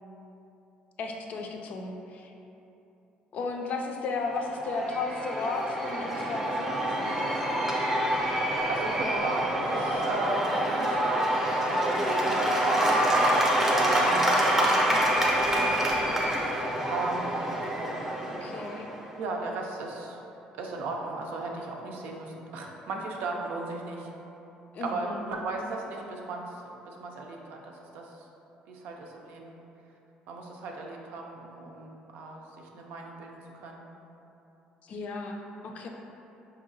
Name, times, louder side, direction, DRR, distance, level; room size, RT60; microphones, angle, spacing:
voice 1, 1.0-2.3 3.3-7.6 18.3-18.9 24.7-25.2 34.8-35.9, left 3 dB, 55° left, 2 dB, 0.4 m, -34 dB
Cheering / Applause / Crowd, 4.3-19.0, right 1 dB, 10° right, 0.6 m, -26 dB
voice 2, 8.4-11.3 11.6-13.0 13.7-15.1 15.3-16.1 16.9-17.6 19.2-20.2 20.5-24.1 24.8-26.5 26.8-28.1 28.7-29.6 30.3-33.8, right 3 dB, 75° right, 0 dB, 0.5 m, -36 dB
4.8 x 2.7 x 2.7 m, 2.9 s
cardioid pair, 110°, 3 cm